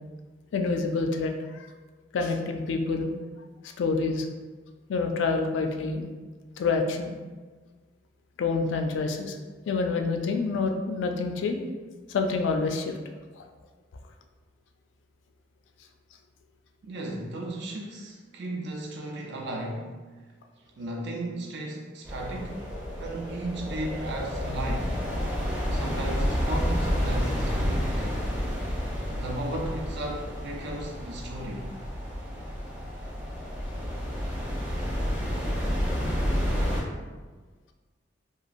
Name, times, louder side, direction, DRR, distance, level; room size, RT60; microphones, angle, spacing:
voice 1, 0.5-1.7 2.1-3.1 3.8-4.3 4.9-6.0 6.6-7.1 8.4-9.4 9.7-11.6 12.1-12.9 13.4-13.5, left 4 dB, 70° left, 4 dB, 0.3 m, -27 dB
voice 2, 16.8-20.2 20.8-22.7 23.0-25.0 25.7-28.2 29.1-31.7, right 1 dB, 65° right, 0 dB, 0.5 m, -35 dB
sound 1, 22.0-36.8, equal, 10° right, 0.6 m, -30 dB
2.9 x 2.4 x 2.4 m, 1.4 s
head